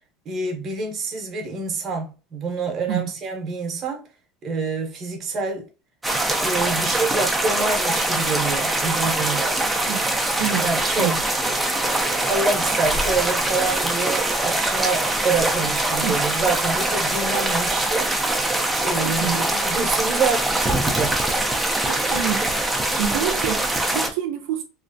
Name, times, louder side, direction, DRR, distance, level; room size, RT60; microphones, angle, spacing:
voice 1, 0.3-4.0 4.4-5.7 6.4-9.5 10.6-18.1 18.8-21.1, right 4 dB, 25° right, 0.8 m, -27 dB
sound 1, 6.0-24.1, right 1 dB, 5° right, 0.4 m, -23 dB
voice 2, 19.0-19.4 21.8-22.6 23.0-24.6, right 10 dB, 65° right, 0.4 m, -27 dB
3.0 x 2.5 x 2.5 m
cardioid pair, 170°, 0 cm